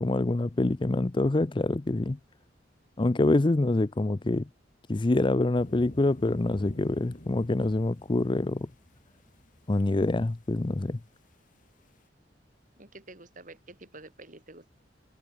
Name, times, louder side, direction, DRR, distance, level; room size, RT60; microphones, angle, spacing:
voice 1, 0.0-2.2 3.0-4.4 4.9-8.7 9.7-11.0, left 2 dB, 25° left, 0.5 m, -26 dB
sound 1, 5.6-11.0 11.3-11.4 11.6-11.7 11.9-12.0, equal, 45° left, 4.1 m, -48 dB
voice 2, 12.8-14.7, right 2 dB, 45° right, 4.7 m, -48 dB
head